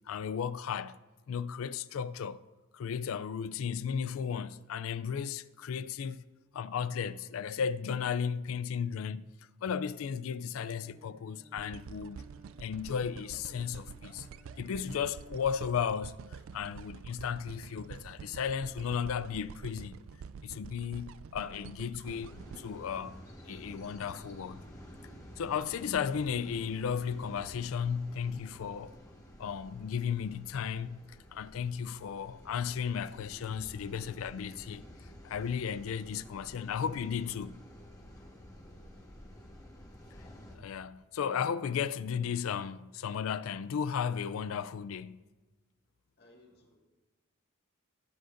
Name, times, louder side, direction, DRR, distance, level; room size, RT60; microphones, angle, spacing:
voice 1, 0.1-1.0 1.3-2.4 2.7-6.2 6.5-9.2 9.6-12.2 12.6-14.3 14.6-16.1 16.5-20.0 20.4-23.2 23.4-24.6 25.4-29.0 29.4-34.8 35.2-37.6 40.6-45.2, left 7 dB, 75° left, 0.4 m, -35 dB
Bowed string instrument, 10.5-15.8, equal, 25° right, 2.1 m, -59 dB
sound 1, 11.6-23.8 24.3-24.4, right 6 dB, 70° right, 0.3 m, -48 dB
sound 2, 22.0-40.6, equal, 15° left, 1.4 m, -51 dB
voice 2, 38.6-39.6 46.2-46.8, left 1 dB, 55° left, 1.8 m, -63 dB
20.0 x 7.7 x 2.6 m
head